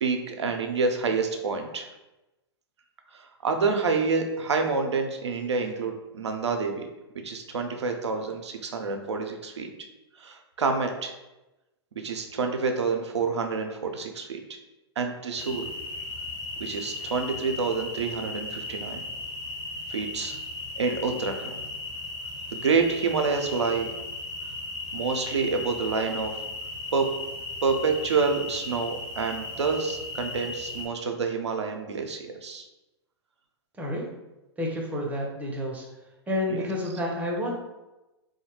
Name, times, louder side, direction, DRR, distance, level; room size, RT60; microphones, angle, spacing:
voice 1, 0.0-1.9 3.1-6.8 7.2-9.7 10.2-11.1 12.0-14.4 15.0-15.7 16.6-19.0 19.9-20.4 20.8-21.5 22.5-23.9 24.9-26.3 26.9-27.1 27.6-32.7 36.5-36.6, right 4 dB, 85° right, 5 dB, 0.5 m, -28 dB
sound 1, 15.4-30.9, left 2 dB, 25° left, 1.2 m, -36 dB
voice 2, 34.6-35.9 36.3-37.5, left 1 dB, 10° right, -2 dB, 0.7 m, -29 dB
2.7 x 2.3 x 2.9 m, 1.0 s
hypercardioid pair, 110°, 14 cm